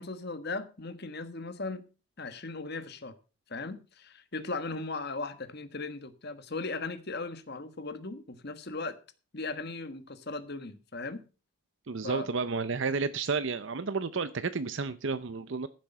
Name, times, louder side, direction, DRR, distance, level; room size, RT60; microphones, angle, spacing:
voice 1, 0.0-1.8 2.2-3.1 3.5-9.0 9.3-11.2 12.0-12.3, left 3 dB, 50° left, 1.4 m, -37 dB
voice 2, 11.9-15.7, right 4 dB, 60° right, 0.6 m, -31 dB
14.5 x 7.7 x 5.6 m
head